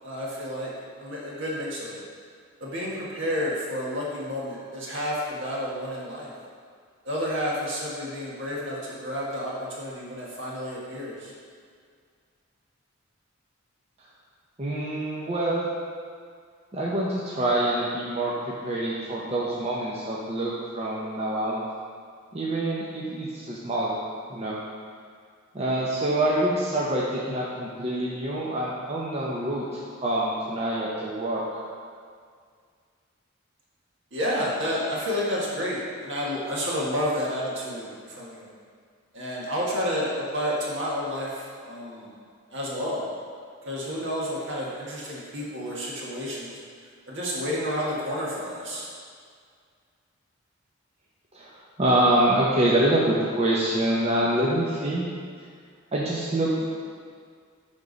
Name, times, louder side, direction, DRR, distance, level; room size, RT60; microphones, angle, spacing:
voice 1, 0.0-0.7 1.0-2.0 2.6-6.3 7.0-11.3 34.1-38.5 39.1-42.1 42.5-43.0 43.6-46.6 47.1-48.9, equal, 65° right, -5 dB, 1.6 m, -30 dB
voice 2, 14.6-15.7 16.7-21.6 22.3-24.0 24.3-24.6 25.5-31.6 51.3-55.1 55.9-56.7, right 1 dB, 30° right, -5 dB, 0.7 m, -26 dB
10.0 x 3.5 x 4.0 m, 2.1 s
head